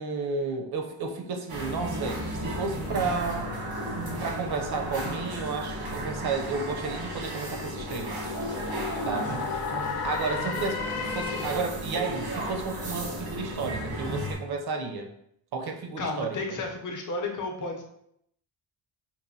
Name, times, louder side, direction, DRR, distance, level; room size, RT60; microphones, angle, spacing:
voice 1, 0.0-3.5 4.2-8.3 9.0-9.4 9.8-15.1 15.5-16.4, right 4 dB, 50° right, 4 dB, 0.6 m, -32 dB
sound 1, 1.5-14.3, right 1 dB, 85° right, 1.3 m, -34 dB
sound 2, 6.2-11.8, left 6 dB, 80° left, 0.7 m, -36 dB
voice 2, 16.0-17.8, left 3 dB, 40° left, 1 dB, 0.6 m, -32 dB
5.5 x 2.5 x 2.6 m, 0.74 s
wide cardioid pair, 180°, 50 cm